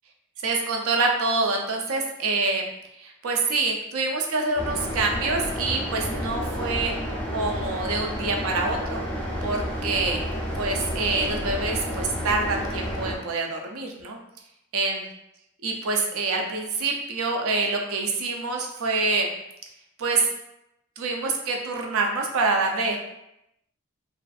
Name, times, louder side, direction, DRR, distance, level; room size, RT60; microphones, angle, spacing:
voice 1, 0.4-2.7 3.0-6.9 7.3-9.0 9.4-10.2 10.5-14.2 14.7-15.1 15.6-19.3 20.0-20.3 21.0-23.0, right 3 dB, 75° right, 2 dB, 0.4 m, -26 dB
sound 1, 4.6-13.2, equal, 5° left, 0.3 m, -30 dB
2.4 x 2.4 x 2.3 m, 0.84 s
head